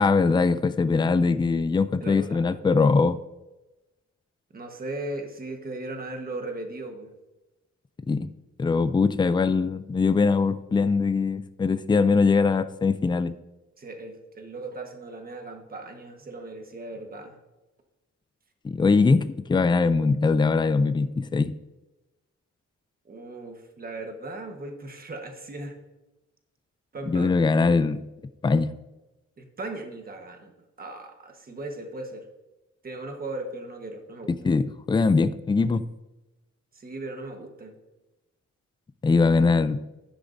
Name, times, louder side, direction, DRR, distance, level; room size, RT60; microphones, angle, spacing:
voice 1, 0.0-3.2 8.1-8.3 8.6-13.4 18.6-21.6 27.1-28.0 28.4-28.7 34.4-35.8 39.0-39.8, left 4 dB, 15° left, 12 dB, 0.3 m, -22 dB
voice 2, 2.0-2.6 4.5-7.1 13.8-17.4 23.0-25.8 26.9-27.3 29.4-30.5 30.8-32.3 32.8-34.3 36.7-37.7, right 2 dB, 30° right, 4 dB, 1.3 m, -37 dB
11.5 x 9.4 x 2.6 m, 1.0 s
wide cardioid pair, 175°, 29 cm